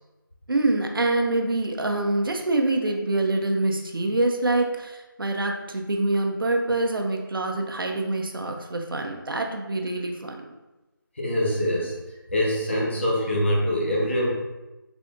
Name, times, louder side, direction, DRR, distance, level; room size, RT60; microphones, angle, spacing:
voice 1, 0.5-10.4, right 2 dB, 75° right, 3 dB, 0.6 m, -25 dB
voice 2, 11.2-11.9 12.3-14.3, equal, 30° left, -3 dB, 0.7 m, -24 dB
3.8 x 3.3 x 2.5 m, 1.1 s
figure-of-eight pair, 175°, 12 cm